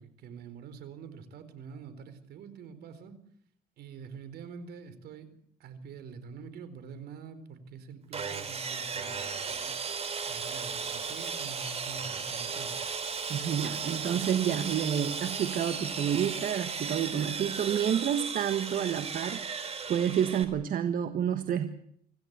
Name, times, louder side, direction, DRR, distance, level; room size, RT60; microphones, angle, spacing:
voice 1, 0.0-3.1 3.8-5.3 5.6-9.7 10.3-12.8, right 6 dB, 70° right, 12 dB, 4.1 m, -46 dB
Sawing, 8.1-20.4, right 5 dB, 35° right, 3.6 m, -35 dB
voice 2, 13.3-21.7, right 9 dB, 55° right, 9 dB, 1.6 m, -29 dB
26.0 x 16.0 x 8.2 m, 0.69 s
cardioid pair, 110°, 17 cm